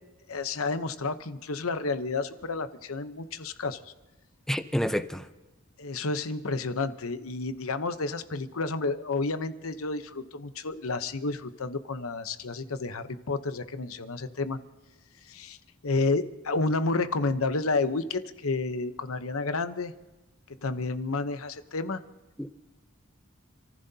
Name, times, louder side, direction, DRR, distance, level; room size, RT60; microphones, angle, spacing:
voice 1, 0.3-3.8 5.8-14.6 15.3-15.6 15.8-19.9 20.6-22.0, left 3 dB, 80° left, 0.9 m, -30 dB
voice 2, 4.5-5.3 22.4-22.5, equal, ahead, 0.6 m, -28 dB
28.0 x 15.0 x 2.8 m
head